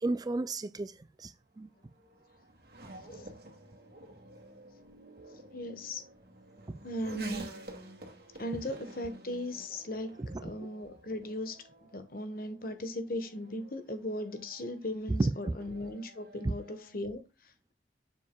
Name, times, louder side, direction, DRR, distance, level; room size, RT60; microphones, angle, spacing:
voice 1, 0.0-1.7 6.7-6.8 10.2-10.5 15.2-15.3 16.4-16.5, right 2 dB, 20° right, 0.4 m, -32 dB
Race car auto racing / Accelerating revving vroom, 0.8-17.0, right 1 dB, 60° right, 2.2 m, -50 dB
voice 2, 5.5-6.0 6.8-7.5 8.4-17.7, left 1 dB, 55° left, 1.3 m, -38 dB
7.2 x 6.5 x 2.3 m
head